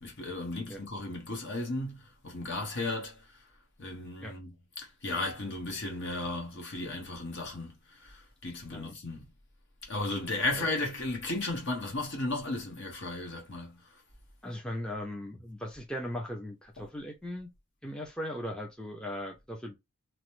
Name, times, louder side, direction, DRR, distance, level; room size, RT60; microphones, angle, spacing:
voice 1, 0.0-3.2 3.8-7.7 8.0-9.2 9.9-13.8 16.8-16.9, left 2 dB, 55° left, 1.1 m, -35 dB
voice 2, 14.4-17.5 17.8-19.8, left 1 dB, 5° left, 0.5 m, -38 dB
3.0 x 2.1 x 3.0 m
head